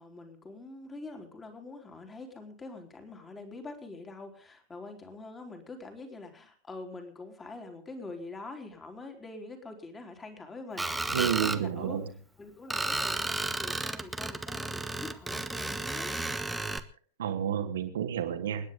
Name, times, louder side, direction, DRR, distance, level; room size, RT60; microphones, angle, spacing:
voice 1, 0.0-12.0 12.4-16.2, left 3 dB, 15° left, 4 dB, 3.6 m, -45 dB
Screech, 10.8-11.6 12.7-16.8, right 2 dB, 5° right, 1.2 m, -33 dB
voice 2, 11.1-12.0 17.2-18.7, right 9 dB, 60° right, 8 dB, 2.2 m, -30 dB
29.0 x 10.0 x 3.7 m, 0.43 s
figure-of-eight pair, 90°, 0 cm